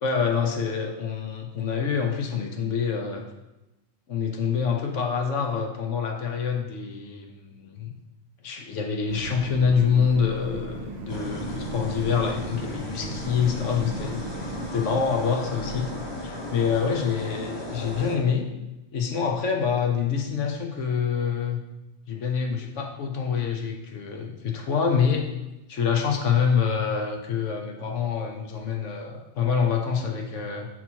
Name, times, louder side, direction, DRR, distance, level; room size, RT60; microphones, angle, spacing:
voice 1, 0.0-3.2 4.1-7.9 8.4-14.2 14.7-15.9 16.2-18.5 18.9-21.6 22.1-25.3 25.7-30.7, left 6 dB, 65° left, 2 dB, 1.1 m, -26 dB
sound 1, 9.1-14.7, right 3 dB, 40° right, 0.7 m, -37 dB
sound 2, 11.1-18.2, left 1 dB, 25° left, 0.7 m, -35 dB
5.7 x 4.2 x 4.4 m, 0.99 s
omnidirectional pair, 1.4 m